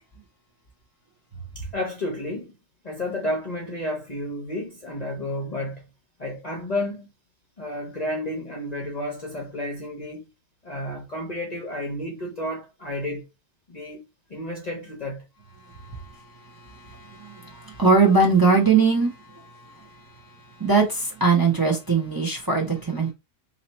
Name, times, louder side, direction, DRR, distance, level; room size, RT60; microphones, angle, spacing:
voice 1, 1.5-2.5 2.8-5.9 6.2-7.1 7.6-10.3 10.6-13.3 13.7-14.0 14.3-15.3, left 1 dB, 35° left, 0.8 m, -31 dB
voice 2, 15.7-19.9 20.6-23.1, right 4 dB, 20° right, 0.8 m, -22 dB
2.9 x 2.9 x 4.1 m
omnidirectional pair, 1.4 m